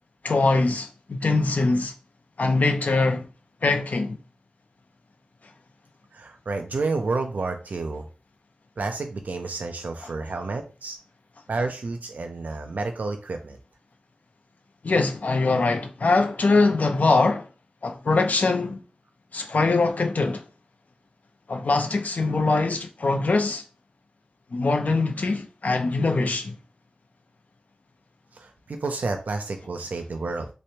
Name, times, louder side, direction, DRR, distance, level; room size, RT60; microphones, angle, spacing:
voice 1, 0.2-1.9 2.4-3.3 3.6-4.2 14.8-17.5 17.8-18.8 19.3-20.4 21.5-23.6 24.5-26.6, left 3 dB, 80° left, 0.5 m, -22 dB
voice 2, 6.1-8.1 8.8-11.0 11.5-13.6 28.3-30.5, right 3 dB, 90° right, 0.4 m, -30 dB
3.3 x 3.0 x 2.8 m
wide cardioid pair, 50°, 3 cm